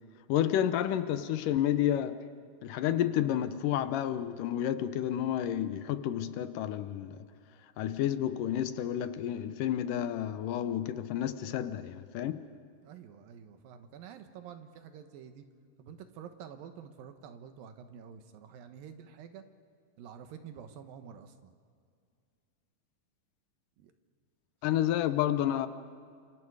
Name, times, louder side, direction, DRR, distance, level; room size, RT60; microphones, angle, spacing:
voice 1, 0.3-2.2 2.6-7.2 7.8-12.5 24.6-25.7, left 11 dB, 75° left, 2.4 m, -30 dB
voice 2, 12.8-15.5 15.8-19.4 20.0-21.5 23.8-23.9, right 8 dB, 85° right, 3.1 m, -48 dB
29.5 x 27.0 x 4.9 m
omnidirectional pair, 4.0 m